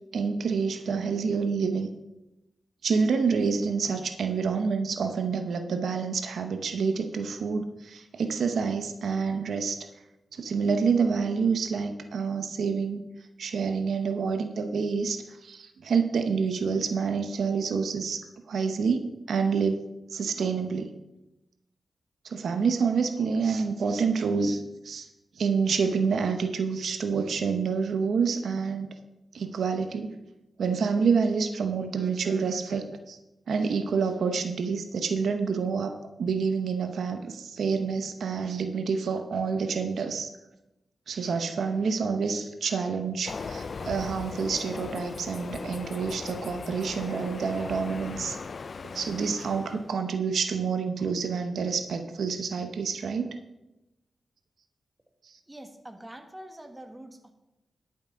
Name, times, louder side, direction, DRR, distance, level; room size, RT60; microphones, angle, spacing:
voice 1, 0.1-1.9 2.8-9.9 10.3-13.0 13.4-20.9 22.2-25.1 25.4-28.9 29.3-30.1 30.6-33.2 33.5-40.3 41.1-48.4 48.9-53.4 55.2-55.3, right 5 dB, 85° right, 7 dB, 0.9 m, -28 dB
Train, 43.3-50.0, left 4 dB, 55° left, 0.4 m, -38 dB
voice 2, 55.5-57.3, right 1 dB, 15° right, 6 dB, 1.4 m, -45 dB
11.0 x 7.6 x 5.1 m, 0.94 s
cardioid pair, 80°, 0 cm